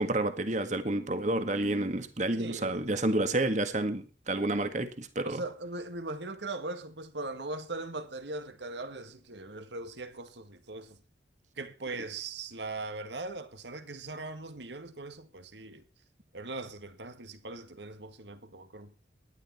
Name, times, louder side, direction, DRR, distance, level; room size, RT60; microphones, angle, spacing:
voice 1, 0.0-5.4, right 2 dB, 40° right, 1.7 m, -30 dB
voice 2, 2.3-3.0 5.2-11.0 11.6-15.8 16.3-18.9, right 2 dB, 70° right, 1.9 m, -40 dB
18.0 x 12.0 x 4.4 m
head